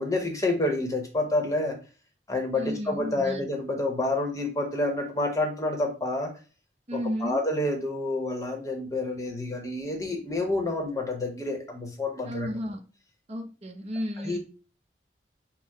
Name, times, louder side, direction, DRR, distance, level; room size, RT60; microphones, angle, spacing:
voice 1, 0.0-1.8 2.3-6.3 6.9-12.5 14.2-14.4, left 2 dB, 20° left, 3 dB, 0.8 m, -28 dB
voice 2, 2.5-3.4 6.9-7.4 12.3-12.8 13.3-14.4, equal, 35° right, 4 dB, 0.7 m, -33 dB
4.4 x 2.0 x 4.6 m, 0.35 s
head